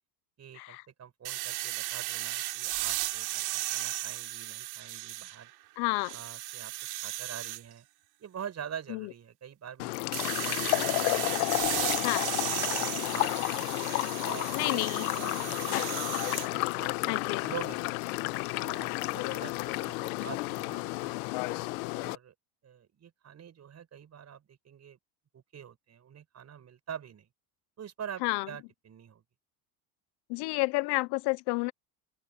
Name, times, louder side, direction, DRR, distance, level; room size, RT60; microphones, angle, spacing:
voice 1, 0.4-5.5 6.1-7.9 8.2-11.3 11.8-12.4 12.7-13.7 14.2-17.9 18.5-21.4 21.9-22.3 22.6-25.0 25.3-27.3 27.8-29.2, right 8 dB, 35° right, 7.6 m, -46 dB
sound 1, 1.2-5.5 5.9-7.6 10.1-16.5, right 16 dB, 60° right, 3.7 m, -35 dB
voice 2, 5.8-6.2 8.9-9.1 12.0-12.3 14.5-15.1 17.1-17.5 28.2-28.5 30.3-31.7, left 25 dB, 65° left, 1.0 m, -30 dB
sound 2, 9.8-22.2, left 22 dB, 80° left, 1.2 m, -31 dB
open air
supercardioid pair, 105°, 43 cm